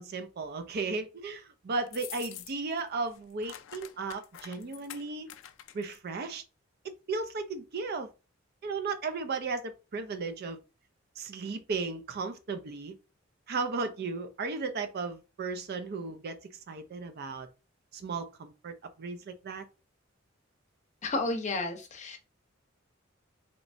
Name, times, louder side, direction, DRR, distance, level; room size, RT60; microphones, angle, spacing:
voice 1, 0.0-5.3 5.7-6.4 7.1-8.1 8.6-10.6 11.2-12.9 13.5-16.4 16.7-17.5 17.9-19.7, right 4 dB, 50° right, 0.4 m, -35 dB
sound 1, 1.9-2.8 3.1-6.0, left 12 dB, 65° left, 0.3 m, -46 dB
voice 2, 21.0-22.2, left 2 dB, 35° left, 0.7 m, -32 dB
3.2 x 3.0 x 2.5 m
head